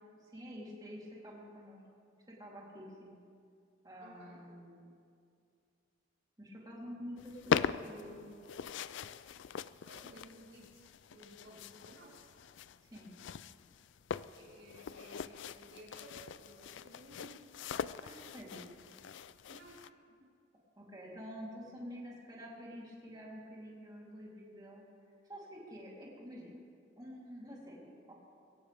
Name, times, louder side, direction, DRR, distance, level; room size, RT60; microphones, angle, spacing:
voice 1, 0.2-1.8 2.3-3.1 3.8-4.9 6.4-7.5 7.8-8.3 12.8-13.1 18.0-18.6 20.8-24.8 25.3-26.6 27.0-28.1, equal, 20° right, -5 dB, 3.4 m, -48 dB
voice 2, 4.0-4.5 9.8-10.9 11.1-12.3 14.4-17.5 19.5-20.3, equal, 75° right, -7 dB, 4.8 m, -56 dB
sound 1, 7.2-19.9, left 6 dB, 65° left, 0.4 m, -41 dB
21.5 x 17.5 x 3.5 m, 2.3 s
head